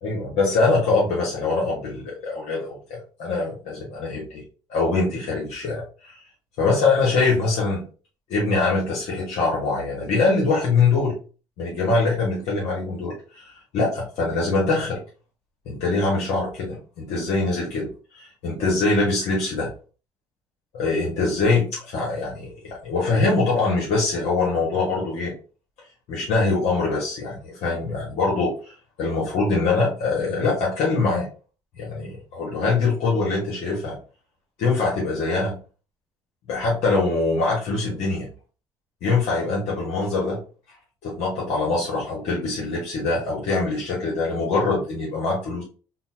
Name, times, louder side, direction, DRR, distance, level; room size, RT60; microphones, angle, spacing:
voice 1, 0.0-4.4 4.7-6.2 6.6-7.8 8.3-11.2 11.6-15.0 15.6-17.9 18.1-19.7 20.7-25.3 26.1-31.3 31.8-34.0 34.6-35.6 36.5-38.3 39.0-40.4 41.0-45.6, left 3 dB, 75° left, -3 dB, 1.2 m, -23 dB
3.9 x 2.1 x 2.6 m, 0.36 s
supercardioid pair, 90°, 11 cm